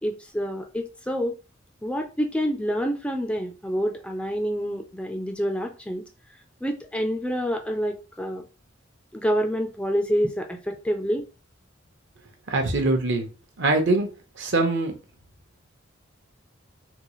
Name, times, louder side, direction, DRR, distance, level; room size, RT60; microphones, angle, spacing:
voice 1, 0.0-1.3 1.8-6.0 6.6-8.4 9.1-11.2, equal, 5° left, 4 dB, 0.3 m, -27 dB
voice 2, 12.5-13.3 13.6-14.1 14.4-14.9, right 2 dB, 65° right, 4 dB, 0.8 m, -22 dB
3.9 x 2.3 x 3.0 m, 0.33 s
head